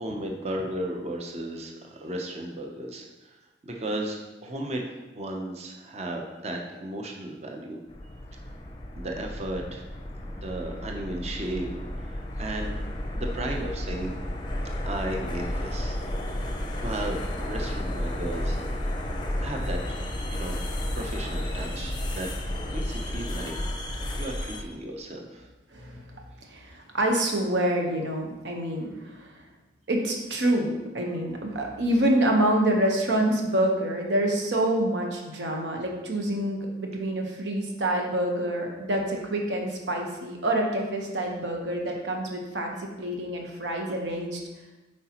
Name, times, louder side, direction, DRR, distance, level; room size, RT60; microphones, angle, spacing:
voice 1, 0.0-3.3 3.6-4.8 5.1-7.8 9.0-9.8 10.4-11.7 12.1-12.8 13.1-14.2 14.9-16.0 16.4-18.6 19.4-19.9 20.3-20.6 20.9-22.3 22.7-23.5 24.2-25.5, right 1 dB, 35° right, 1 dB, 0.6 m, -34 dB
sound 1, 7.9-24.6, left 1 dB, 25° left, 0.5 m, -32 dB
voice 2, 25.7-26.1 26.5-29.3 29.9-44.4, right 1 dB, 80° right, 1 dB, 1.1 m, -27 dB
7.8 x 4.8 x 2.9 m, 1.1 s
head